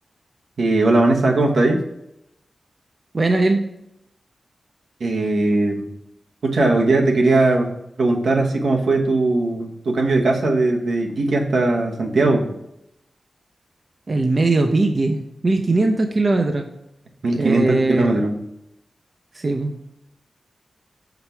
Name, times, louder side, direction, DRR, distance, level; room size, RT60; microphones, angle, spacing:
voice 1, 0.6-1.8 5.0-5.8 6.4-7.7 8.0-12.5 17.2-18.4, right 2 dB, 80° right, 1 dB, 1.1 m, -19 dB
voice 2, 3.1-3.6 14.1-16.7 17.4-18.2 19.3-19.8, right 2 dB, 40° right, 4 dB, 0.5 m, -20 dB
5.9 x 4.4 x 5.7 m, 0.84 s
wide cardioid pair, 105°, 0 cm